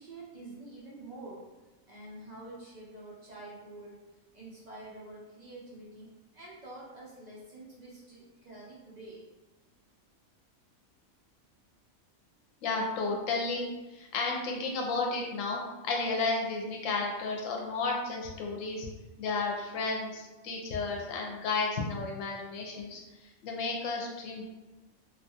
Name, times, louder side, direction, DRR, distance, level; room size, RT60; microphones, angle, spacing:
voice 1, 0.0-1.4 1.9-4.0 4.3-6.1 6.3-9.2, right 2 dB, 75° right, -6 dB, 0.3 m, -47 dB
voice 2, 12.6-18.9 19.2-23.0 23.4-24.5, left 3 dB, 75° left, 0 dB, 0.9 m, -32 dB
2.8 x 2.3 x 2.7 m, 1.1 s
omnidirectional pair, 1.4 m